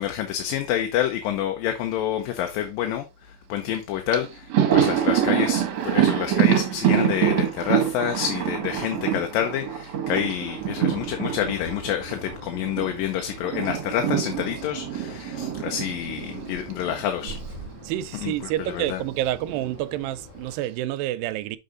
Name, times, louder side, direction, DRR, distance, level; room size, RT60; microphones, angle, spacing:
voice 1, 0.0-17.4 18.1-18.3 18.7-19.0, left 10 dB, 80° left, 2.5 m, -28 dB
Thunder, 3.7-3.8 4.1-12.9 13.2-17.5 17.8-17.9 19.1-19.8, right 10 dB, 60° right, 2.1 m, -25 dB
sound 1, 10.2-20.6, left 1 dB, 55° left, 3.8 m, -44 dB
voice 2, 17.8-21.6, right 13 dB, 90° right, 2.4 m, -28 dB
6.6 x 5.4 x 3.8 m
omnidirectional pair, 4.0 m